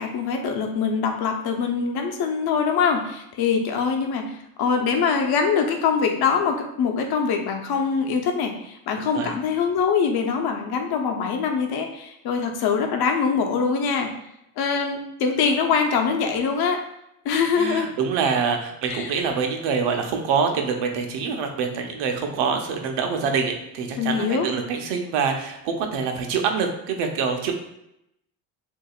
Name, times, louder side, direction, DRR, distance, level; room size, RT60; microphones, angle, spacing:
voice 1, 0.0-14.1 14.6-16.8 17.2-17.9 18.9-19.1 24.0-24.5, left 5 dB, 65° left, 3 dB, 0.9 m, -23 dB
voice 2, 17.6-27.5, right 5 dB, 85° right, 4 dB, 0.9 m, -25 dB
6.5 x 2.8 x 2.4 m, 0.82 s
cardioid pair, 100°, 41 cm